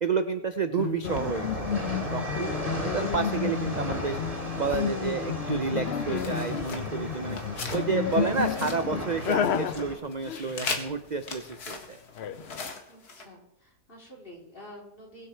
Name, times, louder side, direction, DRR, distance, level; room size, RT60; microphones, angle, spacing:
voice 1, 0.0-4.2 4.6-7.4 7.7-12.0, right 5 dB, 45° right, 9 dB, 0.6 m, -30 dB
sound 1, 0.8-11.3 12.2-12.7, left 8 dB, 55° left, 0.8 m, -32 dB
sound 2, 1.0-10.0, right 1 dB, 20° right, 2.9 m, -36 dB
sound 3, 6.1-7.8 8.1-9.8 10.1-13.3, left 4 dB, 85° left, 2.3 m, -39 dB
voice 2, 12.9-15.3, equal, 35° left, -2 dB, 4.0 m, -48 dB
22.0 x 7.8 x 4.6 m, 0.82 s
omnidirectional pair, 1.6 m